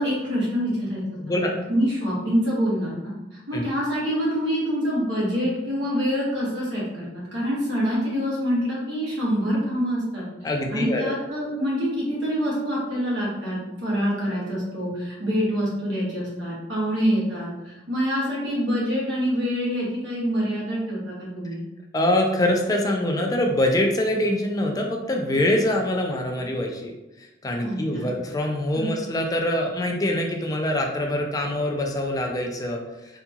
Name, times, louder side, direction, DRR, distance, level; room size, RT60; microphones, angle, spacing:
voice 1, 0.0-1.0 1.3-10.2 10.7-21.6 27.6-28.1 28.7-28.9, equal, 80° right, -5 dB, 1.1 m, -26 dB
voice 2, 1.2-1.5 3.5-3.6 10.4-11.1 21.9-26.9 27.2-32.8, left 1 dB, 20° left, 2 dB, 0.4 m, -24 dB
2.7 x 2.7 x 2.3 m, 0.98 s
head